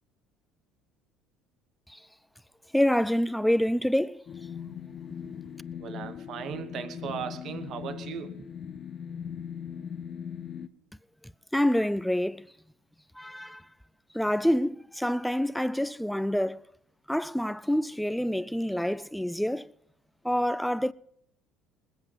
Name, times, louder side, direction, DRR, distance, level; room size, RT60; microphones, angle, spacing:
voice 1, 2.7-4.2 11.5-12.5 13.1-13.7 14.1-16.6 17.1-19.7 20.2-20.9, equal, ahead, 0.4 m, -27 dB
sound 1, 4.3-10.7, left 8 dB, 45° left, 0.8 m, -39 dB
voice 2, 5.8-8.5, right 7 dB, 55° right, 1.3 m, -38 dB
20.5 x 7.9 x 5.7 m
supercardioid pair, 80°, 0 cm